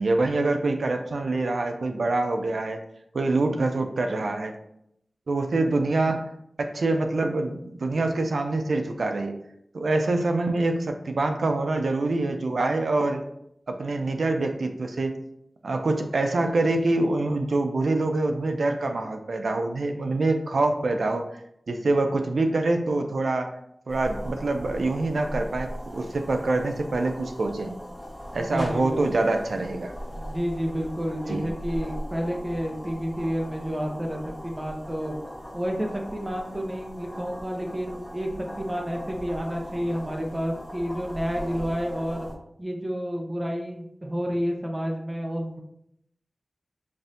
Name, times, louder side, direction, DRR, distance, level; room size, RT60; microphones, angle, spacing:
voice 1, 0.0-2.8 3.1-4.5 5.3-6.2 6.6-9.3 9.7-13.2 13.7-15.1 15.6-21.2 21.7-23.5 23.9-27.8 28.3-29.9 31.3-31.5, right 2 dB, 90° right, 5 dB, 0.5 m, -25 dB
sound 1, 23.9-42.3, equal, 5° left, 1.0 m, -39 dB
voice 2, 28.4-29.0 30.1-35.1 35.5-38.3 38.6-42.3 42.6-45.6, equal, 25° right, 1 dB, 0.7 m, -30 dB
5.2 x 2.6 x 2.7 m, 0.74 s
wide cardioid pair, 70°, 0 cm